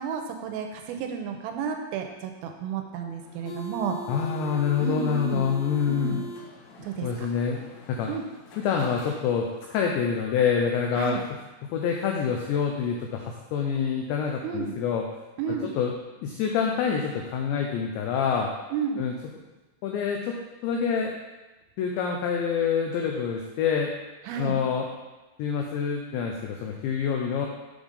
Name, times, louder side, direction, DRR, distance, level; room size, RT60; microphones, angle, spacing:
voice 1, 0.0-4.0 4.8-5.5 5.9-6.2 6.8-7.3 8.1-8.2 11.0-11.2 14.4-14.8 15.4-15.7 18.7-19.0 24.2-24.6, right 6 dB, 85° right, 4 dB, 3.2 m, -32 dB
sound 1, 3.2-9.7, left 1 dB, 70° left, 3.2 m, -42 dB
voice 2, 4.1-6.2 7.0-7.6 7.9-8.1 8.6-11.2 11.7-15.0 15.8-15.9 16.2-18.5 19.0-19.1 19.8-20.4 20.6-21.1 21.8-23.9 24.4-24.9 25.4-27.5, left 7 dB, 85° left, 1 dB, 2.5 m, -26 dB
8.1 x 5.3 x 5.1 m, 1.1 s
omnidirectional pair, 6.0 m